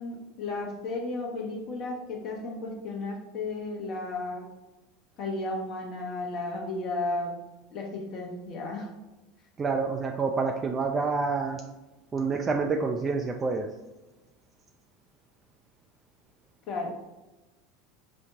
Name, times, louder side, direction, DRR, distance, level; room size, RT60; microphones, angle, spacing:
voice 1, 0.0-4.4 5.2-7.3 7.7-8.9 16.7-16.9, left 2 dB, 45° left, 0 dB, 0.7 m, -34 dB
voice 2, 9.6-11.6 12.1-13.7, right 4 dB, 25° right, 2 dB, 0.3 m, -28 dB
5.2 x 2.1 x 2.8 m, 1.1 s
figure-of-eight pair, 75°, 0 cm